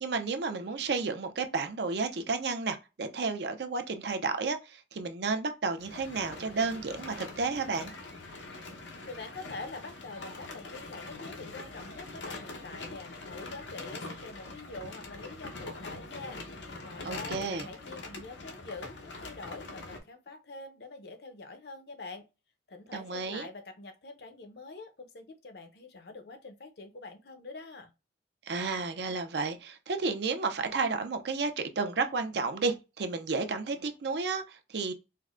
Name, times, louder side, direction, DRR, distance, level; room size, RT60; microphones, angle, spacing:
voice 1, 0.0-7.9 17.0-17.7 22.9-23.5 28.5-34.9, right 4 dB, 65° right, 0.5 m, -32 dB
sound 1, 5.8-20.0, left 2 dB, 90° left, 0.8 m, -43 dB
voice 2, 9.1-22.3 22.7-27.9, left 3 dB, 60° left, 0.7 m, -45 dB
4.5 x 2.1 x 2.4 m
head